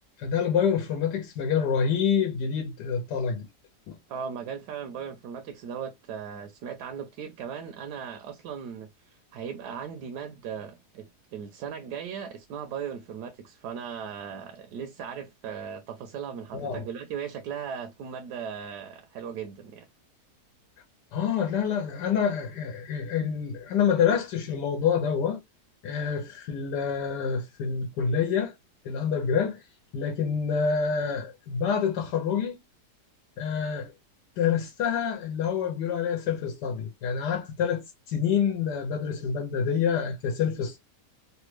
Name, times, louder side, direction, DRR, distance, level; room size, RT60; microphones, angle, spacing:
voice 1, 0.2-3.5 3.9-4.0 16.5-16.8 21.1-25.4 25.8-28.5 28.8-29.6 29.9-32.6 33.4-33.9 34.4-40.8, left 7 dB, 85° left, 1.3 m, -27 dB
voice 2, 4.1-19.9, right 7 dB, 75° right, 1.1 m, -38 dB
3.4 x 2.2 x 3.0 m
omnidirectional pair, 1.8 m